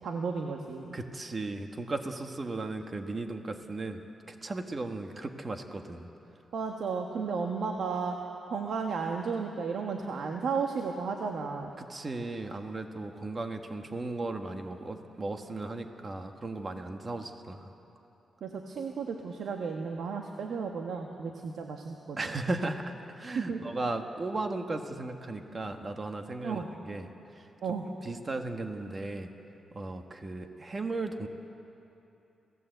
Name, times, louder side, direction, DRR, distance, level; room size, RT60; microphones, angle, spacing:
voice 1, 0.0-1.0 6.5-8.2 8.5-11.7 18.4-22.2 23.3-23.8 26.4-26.7 27.6-27.9, right 5 dB, 75° right, 2 dB, 1.4 m, -33 dB
voice 2, 0.9-6.1 11.8-17.7 22.2-27.4 28.0-29.3 29.7-31.3, right 2 dB, 30° right, 5 dB, 1.5 m, -36 dB
28.5 x 17.0 x 8.0 m, 2.9 s
wide cardioid pair, 135°, 0 cm